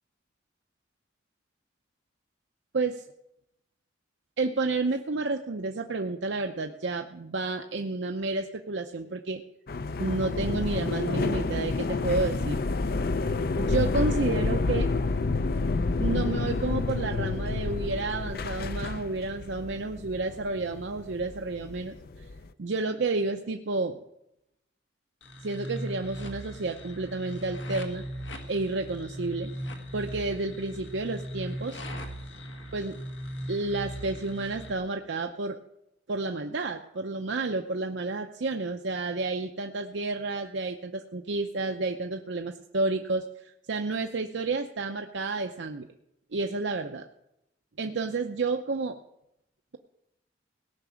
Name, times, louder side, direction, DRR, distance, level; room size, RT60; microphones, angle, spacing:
voice 1, 2.7-3.0 4.4-9.4 10.0-12.6 13.6-14.9 16.0-22.3 22.6-24.0 25.4-28.0 28.5-29.5 29.9-31.8 32.7-32.9 33.5-35.6 36.1-45.9 46.3-47.0 47.8-49.0, right 3 dB, 75° right, 4 dB, 0.7 m, -30 dB
sound 1, 9.7-22.5, left 3 dB, 55° left, 0.5 m, -29 dB
sound 2, 25.2-34.7, equal, 85° left, 1.8 m, -38 dB
17.5 x 6.0 x 8.4 m, 0.83 s
head